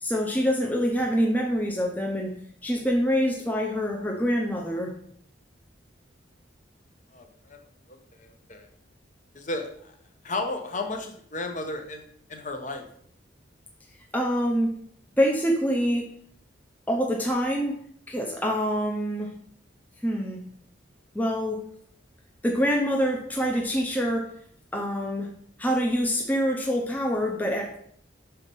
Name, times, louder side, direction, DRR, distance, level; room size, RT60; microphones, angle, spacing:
voice 1, 0.0-2.4 2.6-4.9 14.1-14.7 15.2-16.1 16.9-19.3 20.0-20.4 21.1-21.7 22.4-24.3 24.7-25.3 25.6-27.8, equal, 10° left, 0 dB, 0.7 m, -25 dB
voice 2, 7.1-7.6 7.9-8.7 9.3-9.9 10.2-12.0 12.3-12.9, left 2 dB, 40° left, 4 dB, 0.9 m, -34 dB
5.7 x 4.2 x 5.4 m, 0.64 s
head